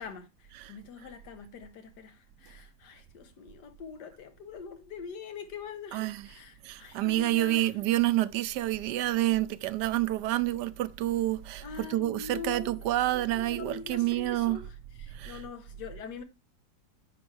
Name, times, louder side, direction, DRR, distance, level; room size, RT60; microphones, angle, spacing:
voice 1, 0.0-7.7 11.6-16.2, left 6 dB, 75° left, 1.6 m, -44 dB
voice 2, 5.9-6.3 6.6-14.6 15.1-15.4, right 15 dB, 80° right, 1.2 m, -28 dB
9.5 x 6.0 x 3.2 m
omnidirectional pair, 1.8 m